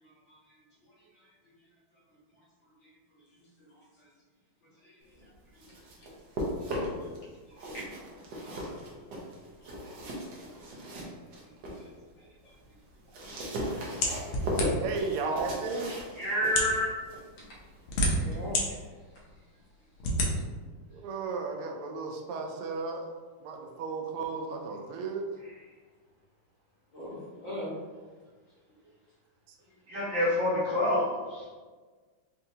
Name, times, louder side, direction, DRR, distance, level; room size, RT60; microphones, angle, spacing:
voice 1, 0.0-0.4 1.0-1.2 2.8-2.9 3.4-4.1 4.8-6.1 6.6-6.8 7.7-7.8 8.4-8.5 9.6-10.2 10.5-10.6 11.8-11.9 12.2-12.5 13.3-13.4 13.8-14.2 17.4-17.6 18.1-18.8 26.9-27.8, equal, 65° left, -7 dB, 1.8 m, -45 dB
sound 1, 5.3-7.2 7.5-11.9 12.3-18.9, equal, 65° right, 1.2 m, -38 dB
sound 2, 14.0-15.0 15.8-15.9 16.4-16.8 17.6-18.6 19.2-19.3 20.0-20.3, left 1 dB, 80° left, 1.6 m, -28 dB
voice 2, 14.8-16.0 20.8-23.1 23.4-25.3, right 4 dB, 85° right, 2 dB, 1.5 m, -34 dB
voice 3, 16.2-16.9 29.9-31.4, left 1 dB, 40° right, -10 dB, 1.6 m, -27 dB
4.4 x 2.7 x 2.7 m, 1.4 s
omnidirectional pair, 2.4 m